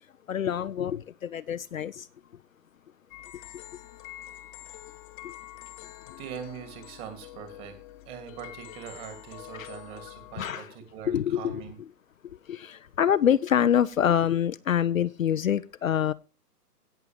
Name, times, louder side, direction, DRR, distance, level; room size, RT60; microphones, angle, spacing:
voice 1, 0.3-2.1 5.2-5.3 6.1-6.2 9.6-9.7 10.4-10.7 11.1-11.6 12.2-16.1, left 9 dB, 60° left, 0.6 m, -26 dB
sound 1, 3.1-10.5, left 15 dB, 20° left, 0.9 m, -46 dB
voice 2, 6.2-7.7 8.1-11.8, right 8 dB, 25° right, 2.6 m, -42 dB
17.0 x 6.8 x 3.3 m
figure-of-eight pair, 125°, 47 cm